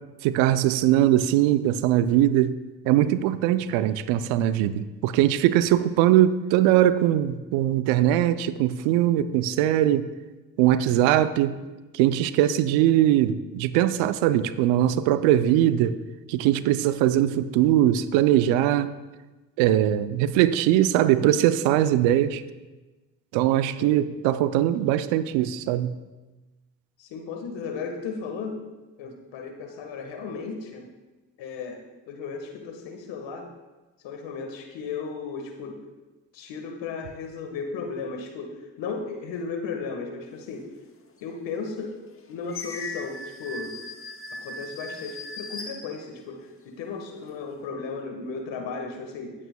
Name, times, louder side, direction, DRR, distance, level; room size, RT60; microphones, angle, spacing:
voice 1, 0.2-2.6 2.8-10.1 10.6-11.6 11.9-16.0 16.3-18.9 19.6-22.4 23.3-26.0, right 12 dB, 75° right, 14 dB, 0.6 m, -21 dB
voice 2, 23.8-24.1 27.0-28.6 29.0-30.9 31.4-33.5 34.0-35.8 36.3-40.7 41.2-41.9 42.3-43.7 44.4-49.3, left 5 dB, 70° left, 4 dB, 1.6 m, -35 dB
sound 1, 41.1-41.2 41.8-46.5 47.0-47.7, left 2 dB, 30° left, 1.1 m, -39 dB
16.5 x 8.5 x 2.2 m, 1.2 s
hypercardioid pair, 45°, 47 cm